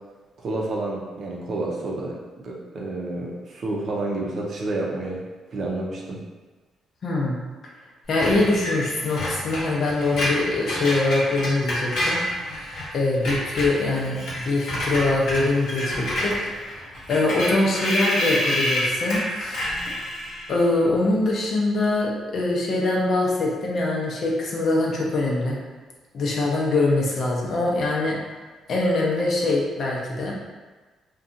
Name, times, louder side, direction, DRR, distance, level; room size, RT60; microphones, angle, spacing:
voice 1, 0.4-5.2 5.5-6.2, right 2 dB, 55° right, -2 dB, 0.6 m, -29 dB
voice 2, 7.0-7.4 8.1-12.2 12.9-19.6 20.5-25.6 26.1-28.2 28.7-30.3, left 2 dB, 55° left, -3 dB, 0.6 m, -23 dB
Screech, 8.2-12.9 13.1-20.6, left 1 dB, 80° left, 0.9 m, -28 dB
2.6 x 2.3 x 2.5 m, 1.3 s
cardioid pair, 90°, 0 cm